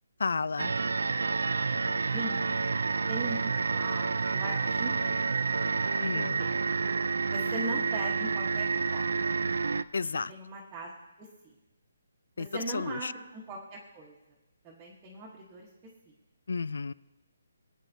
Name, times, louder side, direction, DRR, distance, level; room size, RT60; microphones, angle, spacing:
voice 1, 0.2-0.7 6.0-6.4 9.9-10.3 12.4-12.5 12.7-13.1 16.5-16.9, left 4 dB, 70° left, 20 dB, 0.4 m, -32 dB
sound 1, 0.6-9.8, right 4 dB, 80° right, 0.4 m, -29 dB
voice 2, 1.8-2.5 3.1-5.3 6.1-6.5 7.3-9.0 10.0-10.9 11.2-11.5 12.4-14.1 14.6-15.7, right 2 dB, 10° right, -7 dB, 1.2 m, -40 dB
22.5 x 9.0 x 2.7 m, 1.0 s
hypercardioid pair, 175°, 0 cm